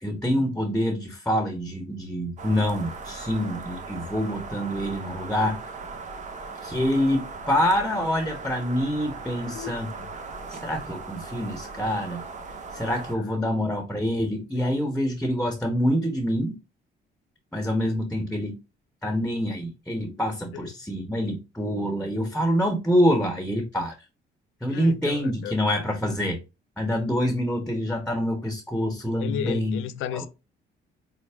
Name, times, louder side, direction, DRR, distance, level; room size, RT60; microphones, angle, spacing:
voice 1, 0.0-5.6 6.6-9.9 10.5-12.2 12.7-16.5 17.5-18.5 19.0-23.9 24.6-26.4 26.8-29.8 30.1-30.3, equal, 5° left, 1.1 m, -26 dB
sound 1, 2.4-13.2, right 4 dB, 40° right, 0.9 m, -38 dB
voice 2, 13.2-13.6 20.5-20.6 24.7-25.6 29.2-30.3, left 11 dB, 85° left, 0.5 m, -34 dB
5.4 x 2.1 x 3.4 m
cardioid pair, 90°, 20 cm